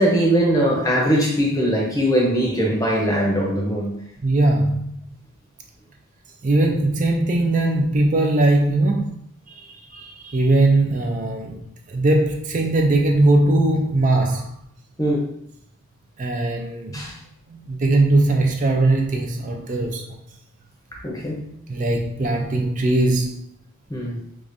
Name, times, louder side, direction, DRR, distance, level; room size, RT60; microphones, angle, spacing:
voice 1, 0.0-3.9 15.0-15.3 16.9-17.1 20.9-21.5 23.9-24.2, equal, 15° left, -1 dB, 0.7 m, -21 dB
voice 2, 4.2-5.1 6.4-9.2 9.5-11.6 11.9-14.5 16.2-17.0 17.5-20.2 21.7-23.4, right 2 dB, 40° right, 1 dB, 0.4 m, -20 dB
4.7 x 2.4 x 2.6 m, 0.69 s
head